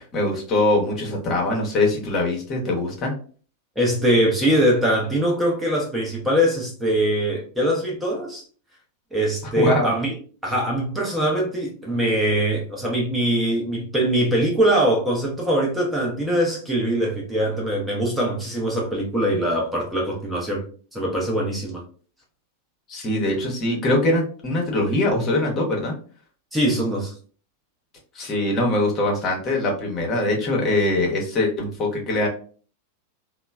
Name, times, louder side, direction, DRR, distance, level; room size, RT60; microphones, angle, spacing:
voice 1, 0.0-3.1 9.6-9.9 22.9-25.9 28.1-32.3, left 1 dB, 30° left, 0 dB, 0.8 m, -22 dB
voice 2, 3.8-8.4 9.1-10.1 10.4-20.6 20.9-21.8 26.5-27.1, right 1 dB, 5° right, -2 dB, 0.7 m, -22 dB
3.0 x 2.0 x 2.3 m, 0.42 s
figure-of-eight pair, 90°, 0 cm